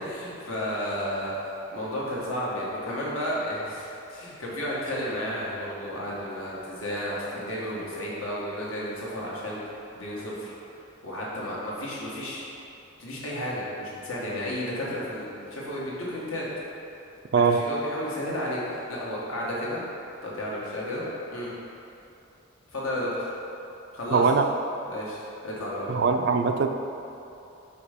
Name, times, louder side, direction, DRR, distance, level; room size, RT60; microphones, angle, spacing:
voice 1, 0.0-9.6 9.9-10.5 11.0-12.4 13.0-16.5 17.4-19.8 20.2-21.0 21.3-21.5 22.7-23.3 23.9-24.2 24.9-25.9, equal, 90° left, -6 dB, 1.5 m, -32 dB
voice 2, 24.1-24.5 25.9-26.7, right 5 dB, 55° right, 6 dB, 0.3 m, -21 dB
5.1 x 4.4 x 5.1 m, 2.8 s
head